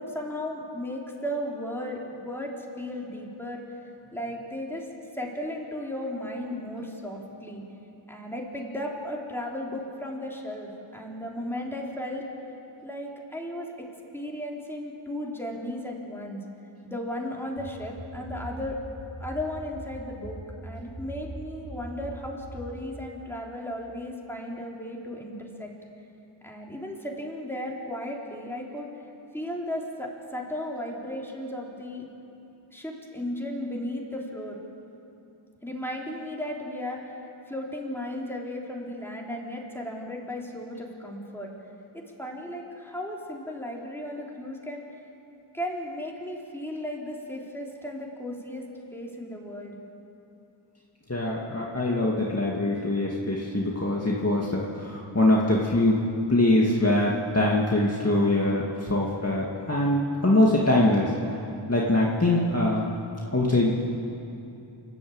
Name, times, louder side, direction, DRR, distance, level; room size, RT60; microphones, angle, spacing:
voice 1, 0.0-4.9 5.1-7.6 8.1-12.2 12.8-13.7 14.1-16.4 16.8-18.8 19.2-20.4 20.6-25.7 26.4-28.9 29.3-32.1 32.7-34.6 35.6-37.2 37.5-41.5 41.9-45.0 45.5-48.6 48.9-49.8, left 1 dB, 5° left, -2 dB, 4.0 m, -35 dB
sound 1, 17.6-22.8, right 1 dB, 65° right, 3.5 m, -41 dB
voice 2, 51.1-56.0 56.3-61.1 61.7-62.9 63.3-63.7, left 1 dB, 30° left, -3 dB, 2.2 m, -23 dB
28.0 x 12.0 x 8.9 m, 2.8 s
wide cardioid pair, 45°, 47 cm